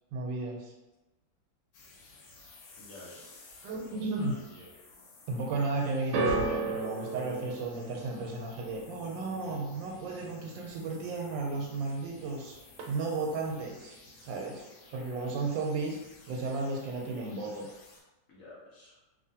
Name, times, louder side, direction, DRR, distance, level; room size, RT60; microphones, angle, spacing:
voice 1, 0.1-0.7 3.6-4.4 5.3-12.6 12.9-14.6 14.9-16.0 16.3-17.7, right 3 dB, 90° right, 0 dB, 1.3 m, -34 dB
sound 1, 1.7-18.0, left 3 dB, 85° left, 1.3 m, -56 dB
voice 2, 2.8-3.2 3.9-4.7 15.2-15.3 18.3-19.0, left 1 dB, 60° left, -7 dB, 0.9 m, -51 dB
sound 2, 6.1-12.4 12.7-13.3 14.1-14.2, right 3 dB, 70° right, 1.0 m, -36 dB
2.9 x 2.5 x 2.7 m, 1.0 s
omnidirectional pair, 2.0 m